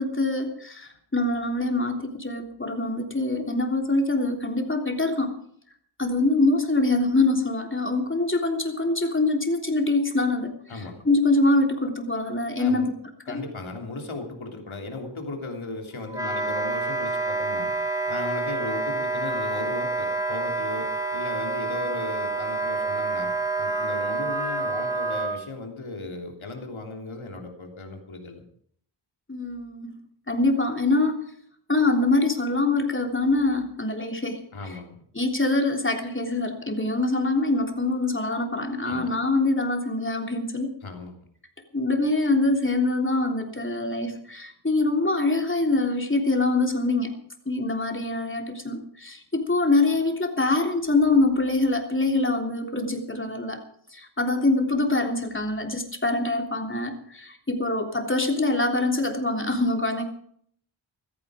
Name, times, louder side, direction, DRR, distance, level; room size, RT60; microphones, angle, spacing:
voice 1, 0.0-5.3 6.0-10.6 11.0-13.0 13.3-13.4 29.3-30.0 30.3-31.2 31.7-34.4 35.1-40.7 41.7-47.1 47.4-53.6 53.9-60.0, left 2 dB, 25° left, 3 dB, 3.4 m, -24 dB
voice 2, 10.7-11.0 12.6-12.9 13.3-17.7 18.0-28.4 34.5-35.0 38.8-39.1 40.8-41.2, left 2 dB, 80° left, 3 dB, 3.3 m, -36 dB
Wind instrument woodwind instrument, 16.1-25.4, right 3 dB, 5° right, 2.7 m, -28 dB
15.5 x 14.5 x 5.0 m, 0.62 s
wide cardioid pair, 50°, 47 cm